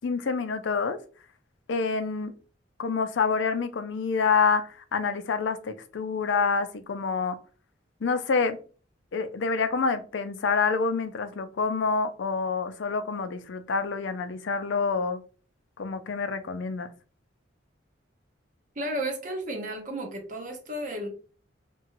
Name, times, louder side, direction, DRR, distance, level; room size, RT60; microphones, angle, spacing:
voice 1, 0.0-1.0 1.7-2.3 2.8-7.4 8.0-8.6 9.1-15.2 15.8-16.9, left 5 dB, 70° left, 10 dB, 0.4 m, -27 dB
voice 2, 18.8-21.1, right 1 dB, 40° right, 2 dB, 0.7 m, -33 dB
2.9 x 2.3 x 2.9 m, 0.37 s
head